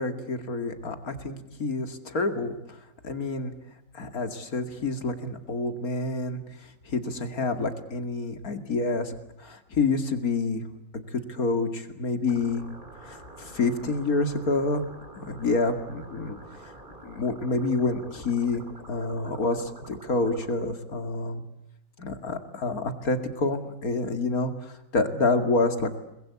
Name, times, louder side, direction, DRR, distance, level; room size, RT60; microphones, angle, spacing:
voice 1, 0.0-2.8 3.0-3.5 3.9-9.1 9.4-10.6 10.9-12.6 13.0-14.8 15.2-16.4 17.0-18.6 18.9-21.4 22.0-26.0, left 3 dB, 80° left, 8 dB, 2.8 m, -28 dB
sound 1, 12.3-20.5, right 1 dB, 35° right, 3.7 m, -47 dB
29.5 x 21.5 x 8.3 m, 0.90 s
omnidirectional pair, 1.5 m